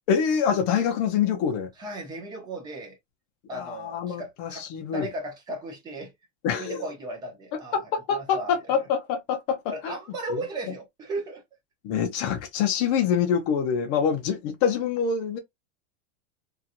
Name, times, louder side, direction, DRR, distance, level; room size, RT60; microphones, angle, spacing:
voice 1, 0.1-1.7 3.5-5.1 6.4-6.8 7.7-10.0 10.3-10.4 11.8-15.4, left 7 dB, 30° left, 0.6 m, -25 dB
voice 2, 1.8-3.0 3.5-4.7 4.9-6.1 6.6-7.9 8.2-8.6 9.7-11.4, right 2 dB, 10° right, 0.6 m, -36 dB
2.8 x 2.4 x 2.5 m
supercardioid pair, 170°, 36 cm